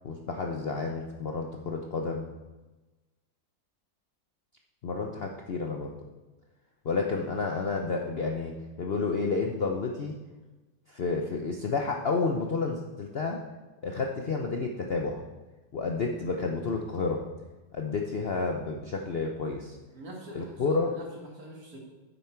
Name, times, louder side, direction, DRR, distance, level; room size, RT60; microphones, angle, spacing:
voice 1, 0.0-2.3 4.8-5.9 6.8-10.1 10.9-13.4 13.8-15.2 15.7-17.2 17.7-19.8 20.4-20.9, left 4 dB, 85° left, 2 dB, 0.5 m, -30 dB
voice 2, 19.9-21.8, right 1 dB, 50° right, -1 dB, 2.4 m, -44 dB
9.4 x 8.1 x 4.5 m, 1.2 s
omnidirectional pair, 2.1 m